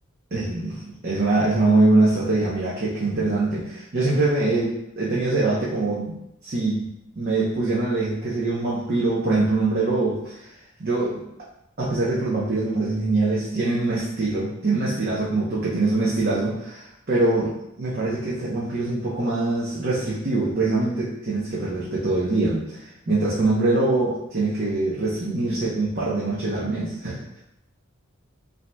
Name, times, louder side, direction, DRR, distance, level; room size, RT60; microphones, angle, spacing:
voice 1, 0.3-6.2 6.4-6.9 7.1-10.5 10.8-11.2 11.8-17.5 17.8-27.4, right 2 dB, 45° right, -7 dB, 0.7 m, -23 dB
5.8 x 2.7 x 2.2 m, 0.83 s
head